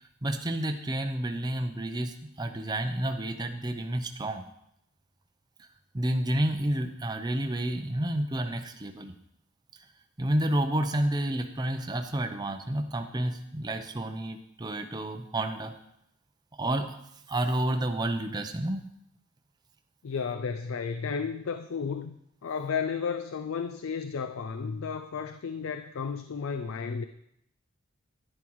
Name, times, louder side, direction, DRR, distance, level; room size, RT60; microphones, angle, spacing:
voice 1, 0.2-4.4 5.9-9.1 10.2-15.7 16.6-17.0 17.3-18.9, right 1 dB, 20° right, 6 dB, 0.6 m, -30 dB
voice 2, 20.0-27.1, left 6 dB, 85° left, 10 dB, 0.4 m, -33 dB
10.5 x 9.9 x 3.1 m, 0.77 s
head